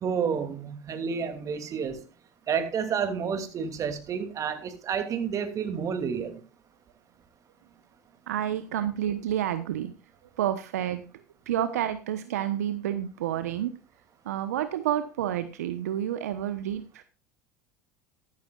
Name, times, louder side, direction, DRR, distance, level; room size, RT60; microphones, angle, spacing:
voice 1, 0.0-2.0 2.5-6.4, right 6 dB, 40° right, 2.8 m, -30 dB
voice 2, 8.3-10.0 10.4-13.7 14.2-17.0, right 11 dB, 80° right, 1.0 m, -29 dB
13.5 x 13.0 x 2.4 m
hypercardioid pair, 80°, 8 cm